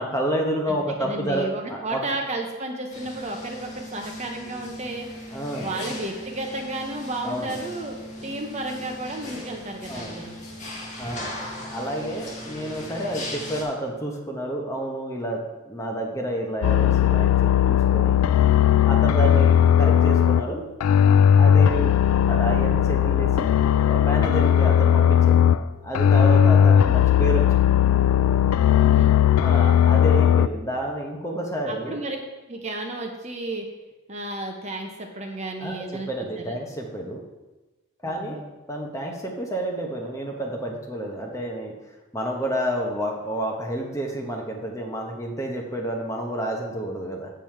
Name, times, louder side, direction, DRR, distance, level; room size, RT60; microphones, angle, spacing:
voice 1, 0.0-2.0 5.3-5.9 7.2-7.6 9.9-10.2 11.0-11.3 11.7-18.2 18.8-20.7 21.3-22.0 22.3-23.5 23.8-25.4 25.8-27.7 29.4-32.0 35.6-37.2 38.0-38.4 38.7-41.7 42.1-47.3, right 1 dB, 15° left, 0 dB, 1.0 m, -29 dB
voice 2, 0.7-5.1 5.6-10.3 26.4-26.7 28.7-29.2 31.7-32.2 32.5-33.7 34.1-36.1 36.4-36.6 38.0-38.4, right 2 dB, 30° right, 3 dB, 0.7 m, -33 dB
sound 1, 2.9-13.6, left 1 dB, 35° left, 1.7 m, -38 dB
sound 2, 16.6-20.5 20.8-25.6 25.9-30.5, left 9 dB, 90° left, 0.3 m, -18 dB
7.4 x 7.0 x 4.6 m, 1.1 s
head